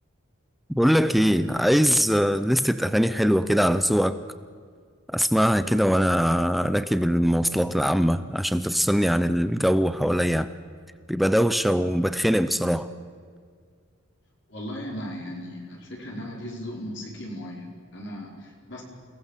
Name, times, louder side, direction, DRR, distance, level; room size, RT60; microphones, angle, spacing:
voice 1, 0.8-4.2 5.1-10.5 11.1-12.9, equal, ahead, 12 dB, 0.6 m, -22 dB
voice 2, 14.5-18.8, equal, 55° left, -1 dB, 5.1 m, -37 dB
29.0 x 18.5 x 7.5 m, 2.1 s
head